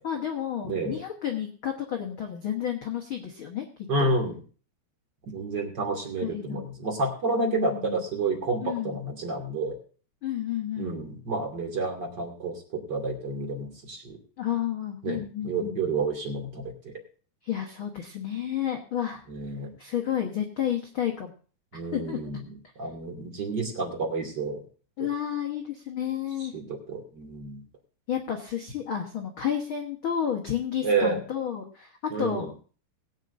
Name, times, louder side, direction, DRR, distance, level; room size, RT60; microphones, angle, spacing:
voice 1, 0.0-3.6 4.0-4.1 6.2-6.7 7.4-8.0 8.6-9.0 10.2-10.9 14.4-15.8 17.4-19.2 19.8-21.3 21.9-22.2 25.0-26.5 28.1-32.5, left 9 dB, 85° left, 1 dB, 1.1 m, -31 dB
voice 2, 0.6-1.0 3.9-4.4 5.3-9.8 10.8-14.2 15.0-16.9 19.3-19.7 21.7-22.4 22.8-24.6 25.0-25.1 26.4-27.6 30.8-31.2 32.1-32.5, right 3 dB, 30° right, 2 dB, 2.5 m, -30 dB
20.5 x 9.1 x 2.6 m, 0.39 s
omnidirectional pair, 4.5 m